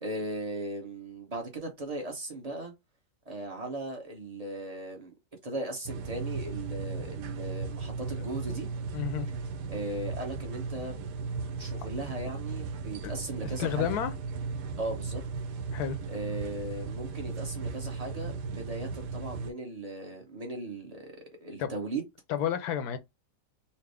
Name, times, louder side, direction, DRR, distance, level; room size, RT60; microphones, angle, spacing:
voice 1, 0.0-2.7 3.3-5.1 5.4-8.7 9.7-11.1 11.6-14.0 14.8-15.2 16.1-22.0, right 2 dB, 30° right, 0.9 m, -37 dB
sound 1, 5.8-19.5, right 4 dB, 80° right, 1.2 m, -36 dB
voice 2, 8.9-9.3 13.0-13.1 13.6-14.1 15.7-16.0 21.6-21.7 22.3-23.0, left 9 dB, 75° left, 1.1 m, -30 dB
4.3 x 2.1 x 3.3 m
omnidirectional pair, 1.8 m